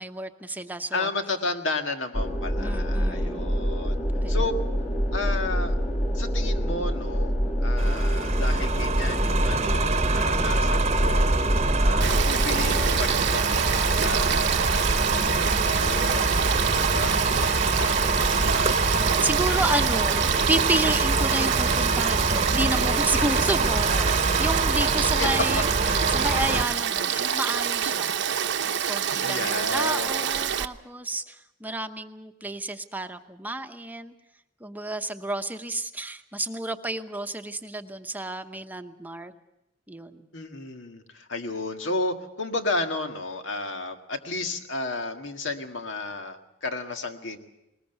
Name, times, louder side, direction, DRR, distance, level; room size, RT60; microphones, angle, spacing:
voice 1, 0.0-1.1 2.6-3.5 4.2-4.4 19.2-25.7 26.1-28.2 28.6-34.1 34.6-39.3 39.9-40.3, right 1 dB, 10° right, 7 dB, 0.8 m, -31 dB
voice 2, 0.9-4.0 4.3-4.6 5.1-5.8 6.1-7.3 7.6-11.4 11.8-18.8 24.8-25.6 29.2-30.1 40.3-47.4, left 2 dB, 85° left, 6 dB, 1.8 m, -33 dB
sound 1, 2.1-13.0, equal, 35° left, 2.2 m, -26 dB
sound 2, 7.8-26.6, right 3 dB, 35° right, 0.9 m, -25 dB
Frog / Stream, 12.0-30.7, right 8 dB, 70° right, 0.8 m, -27 dB
20.0 x 20.0 x 8.0 m, 0.88 s
head